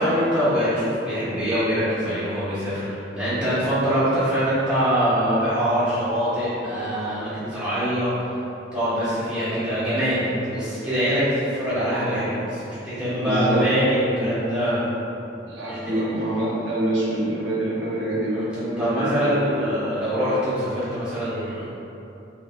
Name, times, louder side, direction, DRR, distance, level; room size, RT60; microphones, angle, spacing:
voice 1, 0.0-8.1 8.7-14.8 15.6-16.0 18.3-18.4 18.8-21.7, equal, 5° right, -13 dB, 1.5 m, -24 dB
voice 2, 13.2-13.6 15.5-19.5, right 1 dB, 85° right, -7 dB, 1.0 m, -26 dB
3.5 x 2.7 x 3.6 m, 2.8 s
head